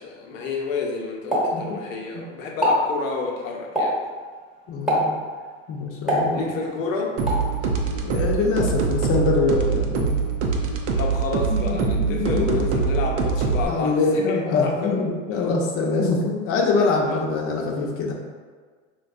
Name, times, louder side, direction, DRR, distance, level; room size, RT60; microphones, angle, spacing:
voice 1, 0.0-4.0 6.3-7.1 11.0-14.9 17.1-17.2, left 4 dB, 75° left, 0 dB, 0.8 m, -29 dB
Explosion, 1.3-2.2 2.5-2.9 3.8-4.1 4.9-5.2 6.1-6.8 7.3-7.5, equal, ahead, 1.1 m, -23 dB
voice 2, 4.7-5.2 5.7-6.6 8.0-10.1 11.5-12.7 13.7-18.1, left 3 dB, 35° left, 0 dB, 0.7 m, -24 dB
sound 1, 7.2-13.6, right 5 dB, 60° right, 0.6 m, -24 dB
4.5 x 2.2 x 2.5 m, 1.5 s
hypercardioid pair, 95°, 39 cm